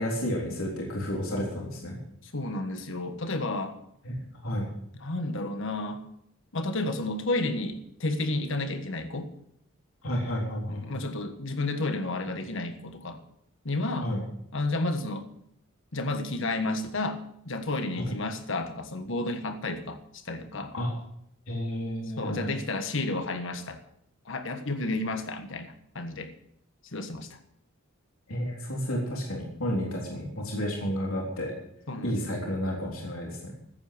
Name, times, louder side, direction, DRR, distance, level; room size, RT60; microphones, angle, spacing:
voice 1, 0.0-2.0 4.0-4.2 4.4-4.7 10.0-10.9 14.0-14.2 18.1-18.2 20.7-20.9 21.5-22.5 28.3-31.5 32.0-33.5, equal, 80° left, -2 dB, 3.6 m, -31 dB
voice 2, 2.2-3.8 5.0-6.1 6.5-9.3 10.7-13.2 13.6-14.1 14.5-15.3 15.9-20.7 22.2-23.8 24.2-26.3 26.9-27.4 31.9-32.3, left 2 dB, 65° left, 8 dB, 1.5 m, -31 dB
15.0 x 9.0 x 6.6 m, 0.74 s
head